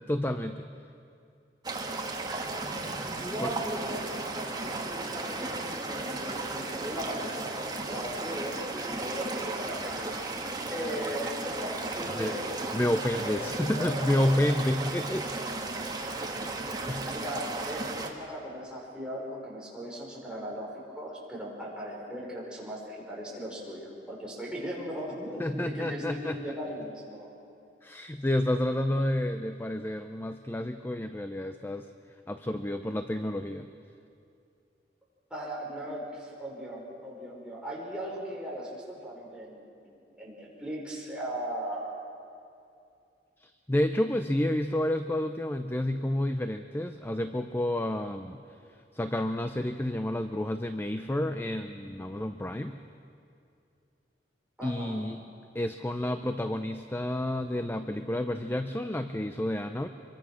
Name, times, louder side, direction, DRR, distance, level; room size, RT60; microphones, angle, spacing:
voice 1, 0.1-0.7 3.4-3.5 12.0-12.3 12.7-15.3 15.6-15.9 16.9-17.1 25.4-26.4 27.8-31.9 32.3-33.7 43.4-48.4 48.9-52.8 54.6-55.2 55.5-59.9, left 1 dB, 15° left, 8 dB, 0.6 m, -30 dB
sound 1, 1.6-18.1, right 2 dB, 25° right, 2.0 m, -35 dB
voice 2, 3.2-10.4 10.7-12.5 13.1-14.4 16.7-27.3 35.3-42.0 54.6-55.0, equal, 5° right, -4 dB, 5.6 m, -38 dB
26.0 x 23.5 x 6.4 m, 2.5 s
head